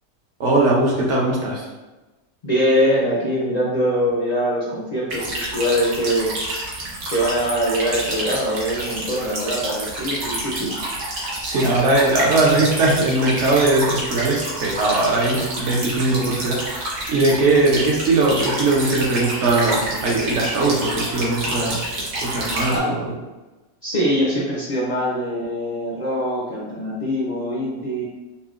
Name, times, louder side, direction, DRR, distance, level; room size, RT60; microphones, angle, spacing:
voice 1, 0.4-1.6 11.2-23.0, right 2 dB, 60° right, -2 dB, 0.9 m, -20 dB
voice 2, 2.4-6.3 7.1-10.7 22.6-23.0 23.8-28.0, equal, 55° left, -7 dB, 0.4 m, -23 dB
sound 1, 5.1-22.8, right 1 dB, 90° right, 1.4 m, -28 dB
5.4 x 2.1 x 2.4 m, 1.1 s
omnidirectional pair, 1.6 m